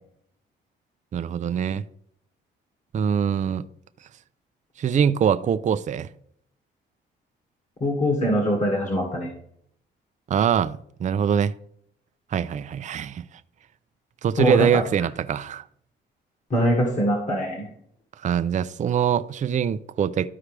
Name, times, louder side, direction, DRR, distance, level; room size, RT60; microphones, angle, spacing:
voice 1, 1.1-1.8 2.9-3.6 4.8-6.1 10.3-11.5 12.3-13.2 14.2-15.6 18.2-20.3, right 8 dB, 40° right, 0.4 m, -23 dB
voice 2, 7.8-9.3 14.4-14.8 16.5-17.7, equal, 40° left, 2.0 m, -23 dB
13.0 x 4.8 x 3.3 m
cardioid pair, 90°, 20 cm